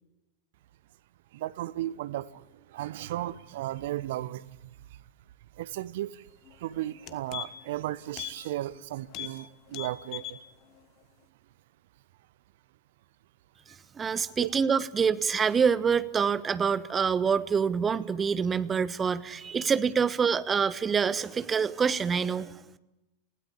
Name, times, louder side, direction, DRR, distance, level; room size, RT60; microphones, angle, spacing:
voice 1, 1.3-4.8 5.6-10.4 13.7-13.8 14.4-14.5, right 14 dB, 55° right, 0.8 m, -35 dB
sound 1, 6.5-6.6 6.9-7.8 8.1-8.4 8.7-8.8 9.1-9.4 9.7-10.4 10.8-10.9, left 14 dB, 40° left, 1.4 m, -39 dB
voice 2, 14.0-22.6, right 6 dB, 20° right, 1.1 m, -26 dB
28.5 x 16.5 x 8.6 m
figure-of-eight pair, 90°, 0 cm